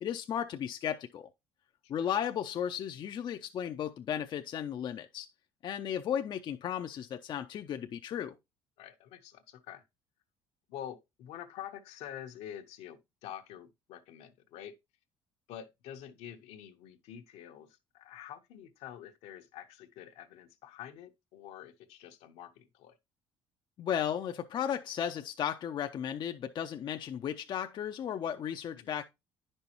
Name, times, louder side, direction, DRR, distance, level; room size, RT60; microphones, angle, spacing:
voice 1, 0.0-1.3 1.9-5.3 5.6-8.4 23.8-29.0, left 9 dB, 45° left, 0.5 m, -35 dB
voice 2, 8.8-9.8 10.7-14.8 15.5-23.0 28.7-28.9, left 10 dB, 75° left, 0.9 m, -47 dB
9.5 x 5.5 x 2.9 m
cardioid pair, 105°, 11 cm